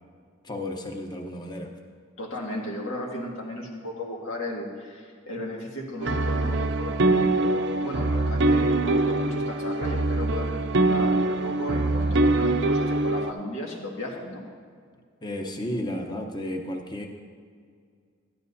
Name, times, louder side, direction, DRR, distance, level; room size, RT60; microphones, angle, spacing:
voice 1, 0.4-1.7 15.2-17.1, left 1 dB, 20° left, 3 dB, 0.8 m, -33 dB
voice 2, 2.2-14.4, left 1 dB, 90° left, -2 dB, 1.9 m, -35 dB
sound 1, 6.0-13.3, right 2 dB, 60° right, 0.5 m, -23 dB
14.0 x 12.0 x 2.7 m, 2.1 s
head